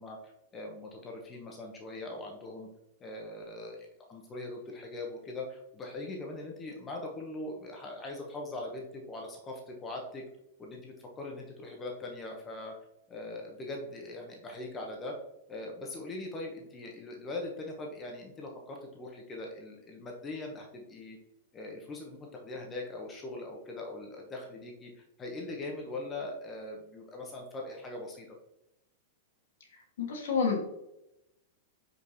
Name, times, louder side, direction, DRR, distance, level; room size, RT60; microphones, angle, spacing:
voice 1, 0.0-2.7 3.0-10.2 10.6-12.7 13.1-15.1 15.5-21.2 21.5-28.4, left 2 dB, 20° left, 0 dB, 1.0 m, -41 dB
voice 2, 29.7-30.6, left 5 dB, 60° left, 2 dB, 1.5 m, -30 dB
6.4 x 5.4 x 2.8 m, 0.85 s
figure-of-eight pair, 95°, 0 cm